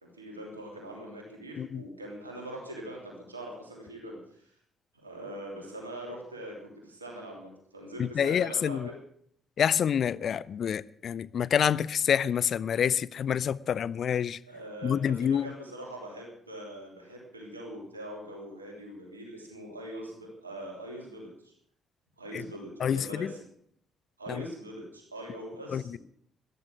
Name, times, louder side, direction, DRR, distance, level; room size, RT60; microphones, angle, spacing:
voice 1, 0.0-4.5 4.9-8.9 14.5-21.5 22.2-23.4 24.2-26.0, right 1 dB, 85° right, 3.2 m, -42 dB
voice 2, 8.0-8.9 9.6-14.4 14.8-15.5 22.3-22.4 22.8-23.3 24.3-24.4 25.7-25.8, left 8 dB, 50° left, 0.5 m, -27 dB
14.0 x 12.5 x 6.4 m
figure-of-eight pair, 45°, 0 cm